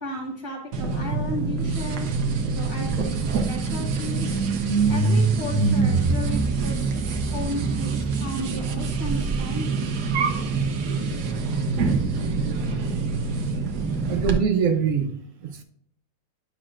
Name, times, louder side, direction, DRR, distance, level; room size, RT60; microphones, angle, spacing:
voice 1, 0.0-2.2 2.5-4.4 4.8-9.9, equal, 15° right, -2 dB, 1.0 m, -35 dB
sound 1, 0.7-14.4, right 4 dB, 60° right, 1.2 m, -25 dB
voice 2, 14.1-15.6, right 6 dB, 85° right, 4 dB, 0.7 m, -24 dB
9.9 x 6.1 x 2.5 m, 0.65 s
omnidirectional pair, 2.3 m